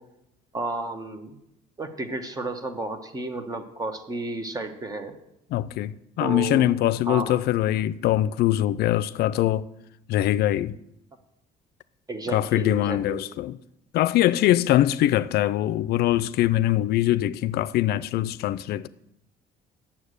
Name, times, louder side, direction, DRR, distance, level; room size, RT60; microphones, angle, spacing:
voice 1, 0.5-1.3 1.8-5.1 6.2-6.7 7.1-7.4 12.1-13.2, right 2 dB, 20° right, 1.1 m, -32 dB
voice 2, 5.5-9.7 10.1-10.8 12.3-13.6 13.9-18.9, left 13 dB, 70° left, 0.4 m, -23 dB
9.2 x 7.3 x 6.5 m
cardioid pair, 110°, 17 cm